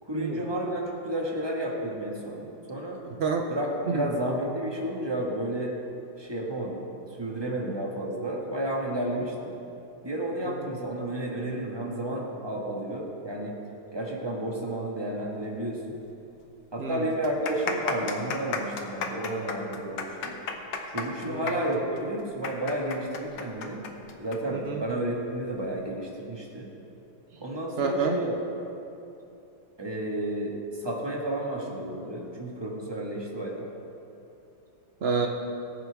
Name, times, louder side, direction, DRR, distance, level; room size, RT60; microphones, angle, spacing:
voice 1, 0.0-3.0 3.5-5.8 6.2-6.8 7.2-9.6 10.0-13.6 13.9-16.0 16.7-20.4 20.9-23.8 24.2-26.7 27.4-28.6 29.8-33.7, right 1 dB, 15° right, -2 dB, 1.5 m, -31 dB
voice 2, 3.1-3.5 3.9-4.1 7.7-7.8 10.6-10.7 16.8-17.0 21.3-21.5 24.5-24.8 27.8-28.2 35.0-35.3, right 5 dB, 80° right, 2 dB, 0.5 m, -28 dB
sound 1, 16.0-16.1 16.4-16.5 17.1-24.4 24.7-24.8 25.5-25.8, left 6 dB, 80° left, 1.7 m, -33 dB
21.0 x 8.9 x 3.5 m, 2.8 s
omnidirectional pair, 2.1 m